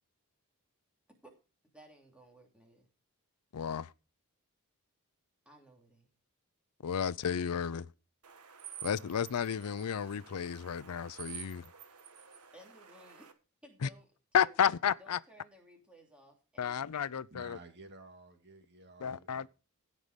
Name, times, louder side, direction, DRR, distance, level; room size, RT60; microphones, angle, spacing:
voice 1, 1.7-2.9 5.4-6.1 12.5-13.3 13.6-14.1 14.4-14.6 15.0-17.2, equal, 5° right, 3.0 m, -58 dB
voice 2, 3.5-3.9 6.8-7.9 8.8-11.7 13.8-13.9 14.3-15.2 16.6-17.6 19.0-19.5, left 8 dB, 85° left, 0.5 m, -32 dB
sound 1, 8.2-13.3, right 9 dB, 80° right, 1.5 m, -50 dB
voice 3, 17.3-19.5, right 2 dB, 50° right, 2.1 m, -53 dB
16.0 x 5.5 x 5.1 m
head